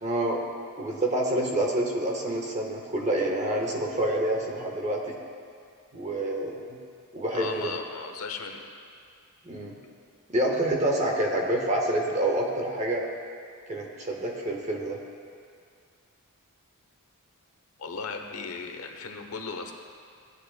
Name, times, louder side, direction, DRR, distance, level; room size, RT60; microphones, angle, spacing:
voice 1, 0.0-0.4 0.7-5.1 5.9-6.8 7.1-7.7 9.4-9.8 10.3-13.0 13.7-15.0, right 1 dB, 30° right, 0 dB, 1.2 m, -27 dB
voice 2, 7.3-8.6 17.8-19.7, left 4 dB, 75° left, 4 dB, 0.9 m, -36 dB
16.5 x 10.0 x 2.2 m, 2.2 s
head